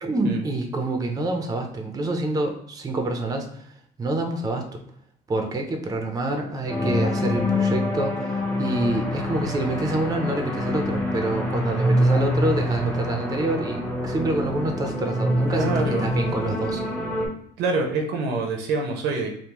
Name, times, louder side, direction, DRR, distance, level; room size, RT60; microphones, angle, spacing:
voice 1, 0.0-3.7 4.0-4.7 5.3-15.7 16.0-16.8, right 2 dB, 20° right, 4 dB, 0.6 m, -27 dB
sound 1, 6.7-17.3, left 1 dB, 10° left, 0.8 m, -25 dB
voice 2, 15.5-16.1 17.6-19.3, right 3 dB, 80° right, 3 dB, 0.7 m, -25 dB
3.5 x 2.1 x 3.0 m, 0.69 s
cardioid pair, 110°, 17 cm